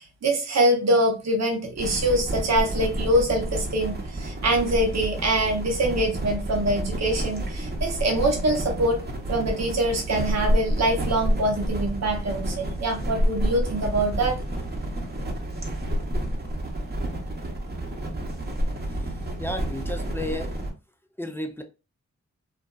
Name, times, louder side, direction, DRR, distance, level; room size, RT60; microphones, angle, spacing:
voice 1, 0.0-9.0 9.3-14.4, right 1 dB, 60° right, 0.8 m, -24 dB
sound 1, 1.8-20.7, right 1 dB, 35° right, 0.9 m, -29 dB
voice 2, 19.4-20.6 21.2-21.6, left 1 dB, 10° left, 0.5 m, -32 dB
2.5 x 2.3 x 2.2 m
cardioid pair, 40°, 30 cm